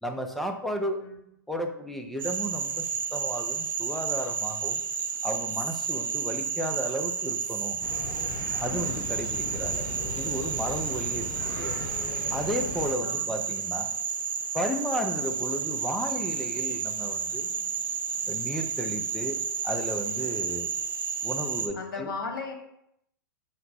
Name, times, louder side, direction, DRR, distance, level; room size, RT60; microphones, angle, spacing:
voice 1, 0.0-1.1 1.5-2.8 3.1-4.8 5.2-7.8 8.6-9.9 10.2-11.7 12.3-13.9 14.5-17.5 18.3-20.7 21.2-22.1, equal, ahead, 5 dB, 0.5 m, -33 dB
Frog, 2.2-21.7, right 6 dB, 75° right, 0.6 m, -31 dB
sound 1, 7.8-12.9, left 3 dB, 35° left, 0.8 m, -37 dB
voice 2, 11.1-11.5 13.0-13.4 21.7-22.5, left 4 dB, 70° left, 2 dB, 1.1 m, -37 dB
5.7 x 2.1 x 4.0 m, 0.77 s
hypercardioid pair, 110°, 11 cm